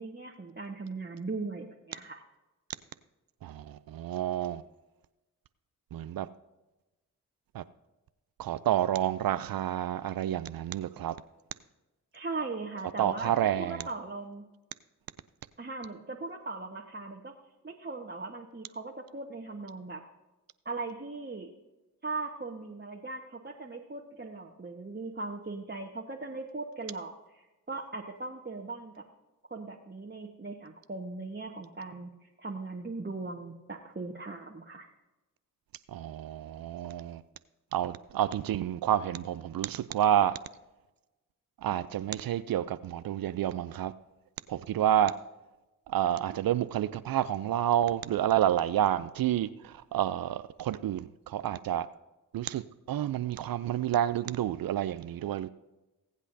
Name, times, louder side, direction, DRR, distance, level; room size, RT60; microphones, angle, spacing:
voice 1, 0.0-2.2 12.1-13.3 13.6-14.4 15.6-17.3 17.6-20.0 20.6-21.5 22.0-29.0 29.5-34.9, right 3 dB, 25° right, 1.4 m, -39 dB
voice 2, 3.4-4.6 5.9-6.3 7.5-7.6 8.4-11.2 13.0-13.9 35.9-37.2 37.7-40.4 41.6-43.9 44.5-45.2 45.9-51.9 52.3-55.5, right 11 dB, 55° right, 0.5 m, -29 dB
20.5 x 8.2 x 2.7 m
hypercardioid pair, 40°, 42 cm